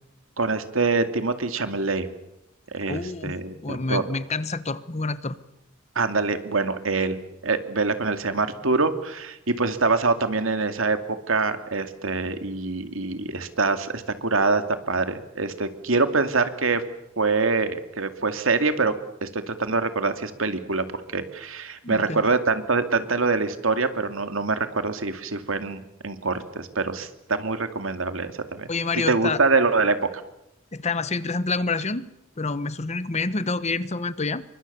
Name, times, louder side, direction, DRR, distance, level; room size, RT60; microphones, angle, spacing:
voice 1, 0.4-2.1 2.7-4.0 6.0-7.2 7.4-16.8 17.2-18.9 19.2-20.9 21.1-28.7 29.1-30.0, right 3 dB, 75° right, 8 dB, 2.4 m, -25 dB
voice 2, 2.9-5.4 21.8-22.3 28.7-29.4 30.7-32.1 32.4-34.4, left 3 dB, 35° left, 14 dB, 1.1 m, -28 dB
28.5 x 24.0 x 6.9 m, 0.86 s
head